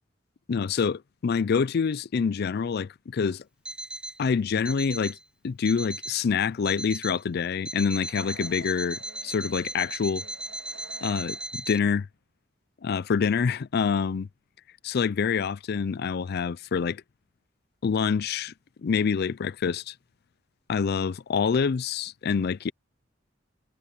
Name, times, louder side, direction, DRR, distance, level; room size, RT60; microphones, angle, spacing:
voice 1, 0.5-3.4 4.2-5.2 5.4-10.2 11.0-12.1 12.8-14.3 14.8-17.0 17.8-18.5 18.8-19.9 20.7-22.7, left 6 dB, 55° left, 0.4 m, -26 dB
Alarm, 3.6-4.2 4.6-5.2 5.6-6.2 6.6-7.2 7.6-11.8, right 1 dB, 5° right, 0.6 m, -37 dB
sound 1, 7.9-11.8, right 5 dB, 80° right, 2.6 m, -50 dB
head